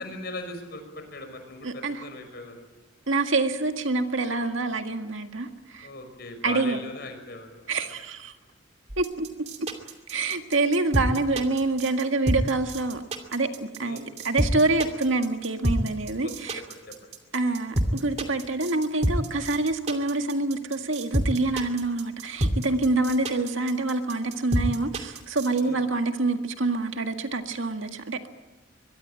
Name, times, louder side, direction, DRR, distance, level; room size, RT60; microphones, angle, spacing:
voice 1, 0.0-2.6 5.8-7.7 13.8-14.1 16.2-16.3 16.9-17.1 25.6-25.9, left 2 dB, 50° left, 6 dB, 5.8 m, -39 dB
voice 2, 1.6-2.0 3.1-5.9 6.4-6.8 7.7-8.3 9.0-9.3 9.6-9.7 10.1-13.0 13.3-14.0 14.2-16.6 17.3-28.2, right 3 dB, 75° right, 6 dB, 1.9 m, -26 dB
sound 1, 8.9-25.6, right 1 dB, 35° right, 2.5 m, -28 dB
23.5 x 23.0 x 9.0 m, 1.1 s
head